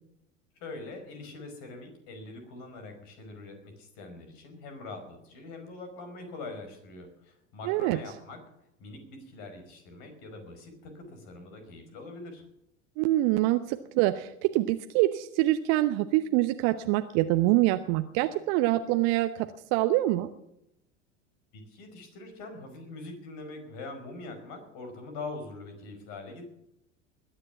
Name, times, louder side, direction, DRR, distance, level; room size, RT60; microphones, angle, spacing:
voice 1, 0.6-8.4 8.8-12.4 21.5-26.4, left 2 dB, 50° left, 6 dB, 5.2 m, -43 dB
voice 2, 7.6-8.0 13.0-20.3, right 16 dB, 45° right, 10 dB, 0.9 m, -25 dB
20.5 x 10.0 x 7.0 m, 0.81 s
figure-of-eight pair, 75°, 37 cm